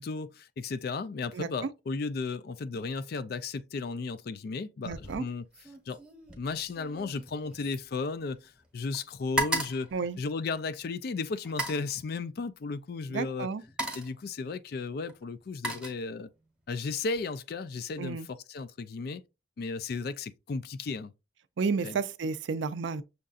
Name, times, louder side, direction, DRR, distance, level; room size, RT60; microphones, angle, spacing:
voice 1, 0.0-5.5 5.9-6.0 6.4-9.9 10.2-13.5 13.9-16.3 16.7-19.2 19.6-21.1 21.8-22.0, left 4 dB, 55° left, 0.4 m, -34 dB
voice 2, 4.8-5.2 9.9-10.2 13.1-13.6 18.0-18.3 21.6-23.0, right 5 dB, 75° right, 0.4 m, -31 dB
sound 1, 4.9-5.2 5.5-8.7 8.9-10.8 11.4-11.9 12.9-13.1 13.5-14.2 15.1-16.5 16.8-17.2, right 1 dB, 5° right, 1.0 m, -36 dB
6.4 x 2.6 x 2.4 m
head